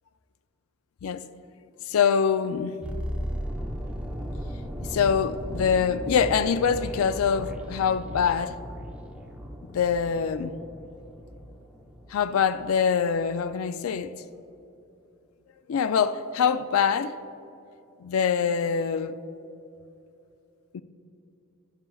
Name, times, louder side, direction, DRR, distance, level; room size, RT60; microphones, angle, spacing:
voice 1, 1.9-2.8 4.8-8.6 9.7-10.5 12.1-14.1 15.7-17.2 18.0-19.2 20.7-20.8, left 7 dB, 85° left, 0.4 m, -24 dB
sound 1, 2.8-12.8 13.1-13.3, equal, 5° right, 0.6 m, -36 dB
11.0 x 10.0 x 2.3 m
head